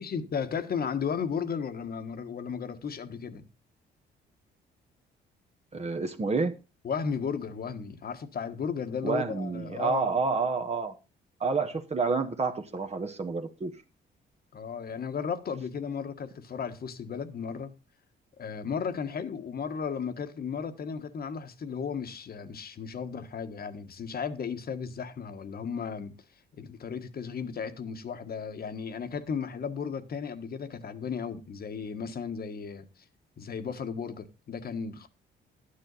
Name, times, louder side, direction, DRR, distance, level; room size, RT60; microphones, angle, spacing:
voice 1, 0.0-3.5 6.8-10.1 14.5-17.7 18.4-26.2 26.6-33.0 33.4-35.1, left 6 dB, 50° left, 1.5 m, -35 dB
voice 2, 5.7-6.6 9.0-11.0 11.4-13.7, right 4 dB, 30° right, 1.4 m, -29 dB
12.0 x 9.9 x 4.1 m
cardioid pair, 90°, 20 cm